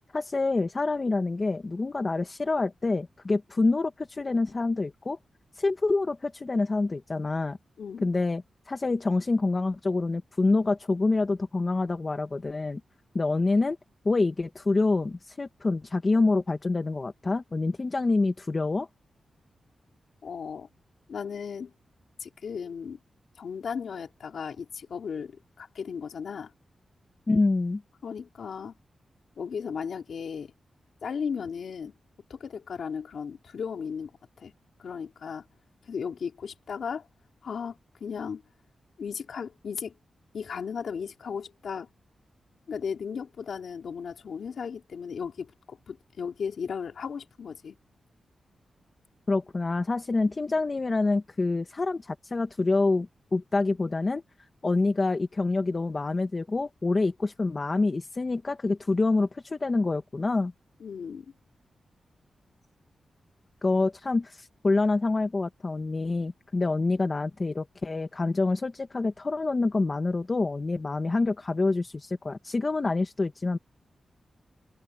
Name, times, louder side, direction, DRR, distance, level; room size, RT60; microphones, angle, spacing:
voice 1, 0.1-5.2 5.5-7.6 8.0-12.8 13.1-13.8 14.0-18.9 27.3-27.8 49.3-54.2 54.6-60.5 63.6-73.6, left 3 dB, 30° left, 1.1 m, -26 dB
voice 2, 20.2-20.7 21.1-21.7 22.2-23.0 23.4-26.5 28.0-28.7 29.4-30.5 31.0-31.9 32.3-34.1 34.4-34.5 34.8-35.4 35.8-37.1 37.4-38.4 39.0-39.9 40.3-41.9 42.7-47.7 60.8-61.3, left 6 dB, 65° left, 3.1 m, -35 dB
wide cardioid pair, 160°, 0 cm